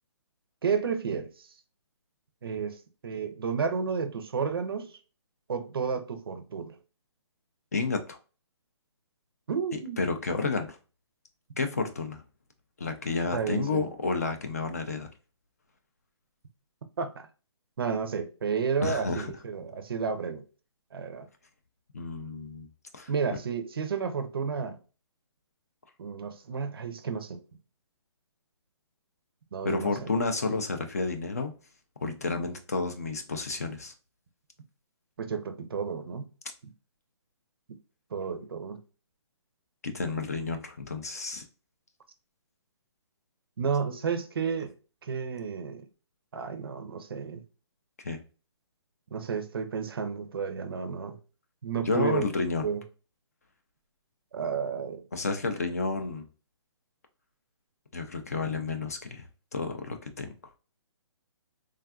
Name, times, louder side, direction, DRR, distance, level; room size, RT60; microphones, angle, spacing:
voice 1, 0.6-1.5 2.4-5.0 5.5-6.8 9.5-10.1 13.3-13.9 17.0-17.3 17.8-20.4 20.9-21.3 23.1-24.8 26.0-27.4 29.5-30.1 35.2-36.3 38.1-38.8 43.6-44.7 45.0-45.9 46.3-47.4 49.1-51.2 51.6-52.2 52.6-52.8 54.3-55.1, right 6 dB, 55° right, 0.5 m, -31 dB
voice 2, 7.7-8.2 10.0-10.8 11.6-12.2 12.8-15.1 18.8-19.3 21.9-22.7 22.9-23.1 29.6-31.5 32.0-33.9 39.8-41.4 48.0-48.2 51.9-52.6 55.1-56.3 57.9-59.2 59.5-60.3, left 3 dB, 35° left, 0.3 m, -30 dB
3.4 x 2.3 x 2.3 m
hypercardioid pair, 175°, 15 cm